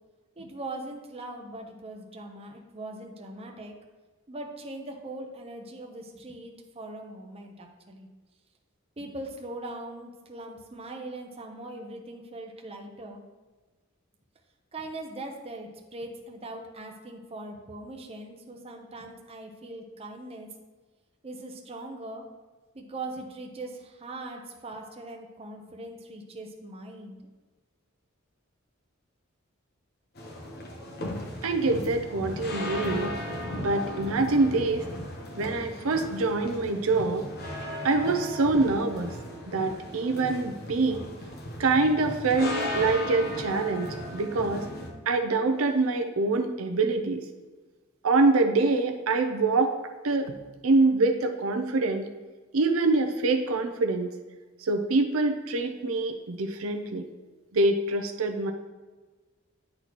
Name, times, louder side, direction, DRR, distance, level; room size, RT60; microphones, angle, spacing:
voice 1, 0.4-3.7 4.3-8.1 9.0-13.2 14.7-20.5 21.2-22.3 22.7-27.2, right 2 dB, 30° right, 2 dB, 0.7 m, -40 dB
sound 1, 30.2-44.9, left 1 dB, 50° left, 1.0 m, -36 dB
voice 2, 31.4-33.1 33.6-34.9 35.4-37.3 37.8-39.1 39.5-41.1 41.6-44.7 45.1-47.2 48.0-49.7 50.0-50.4 50.6-52.1 52.5-54.1 54.6-57.0 57.5-58.5, right 3 dB, 80° right, 5 dB, 0.6 m, -25 dB
9.7 x 4.1 x 3.0 m, 1.3 s
head